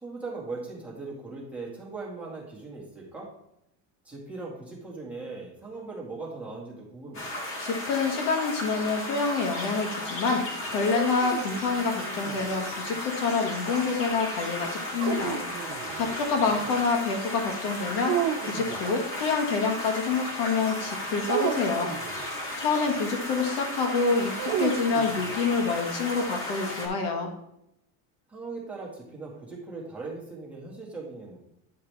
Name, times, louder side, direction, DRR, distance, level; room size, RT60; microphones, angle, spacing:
voice 1, 0.0-3.3 4.0-7.3 16.4-16.7 28.3-31.4, right 3 dB, 5° right, -5 dB, 1.9 m, -39 dB
sound 1, 7.1-26.9, left 1 dB, 30° left, 1.9 m, -35 dB
voice 2, 7.6-21.9 22.1-27.3, left 4 dB, 65° left, 3 dB, 1.6 m, -27 dB
sound 2, 10.7-12.5 15.0-16.2 18.0-18.8 21.3-22.3 24.4-25.6, right 10 dB, 35° right, 0.4 m, -33 dB
9.5 x 5.5 x 3.4 m, 0.80 s
cardioid pair, 160°, 42 cm